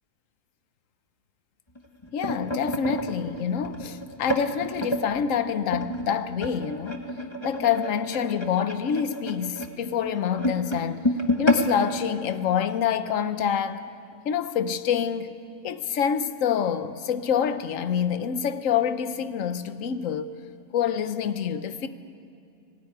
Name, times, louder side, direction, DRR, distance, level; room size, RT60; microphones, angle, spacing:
sound 1, 1.7-5.1 5.7-13.0 13.4-13.6 13.9-14.1 14.9-15.0, left 1 dB, 20° left, 1.3 m, -30 dB
voice 1, 2.1-7.1 7.4-11.1 11.4-13.8 14.2-15.3 15.6-20.3 20.7-21.9, left 8 dB, 60° left, 1.2 m, -26 dB
19.0 x 17.0 x 9.6 m
omnidirectional pair, 1.7 m